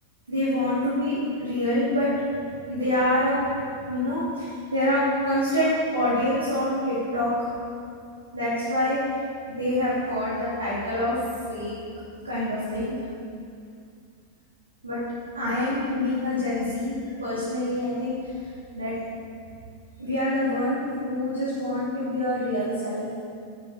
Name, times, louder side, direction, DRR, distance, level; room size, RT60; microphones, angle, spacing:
voice 1, 0.3-2.1 2.4-3.4 3.7-7.5 8.3-9.0 9.5-11.2 11.5-11.7 12.2-12.9 14.8-15.0 15.3-16.9 17.2-18.2 18.7-18.9 20.0-23.0, left 1 dB, 75° right, -10 dB, 3.2 m, -26 dB
14.5 x 8.9 x 3.7 m, 2.3 s
figure-of-eight pair, 90°, 0 cm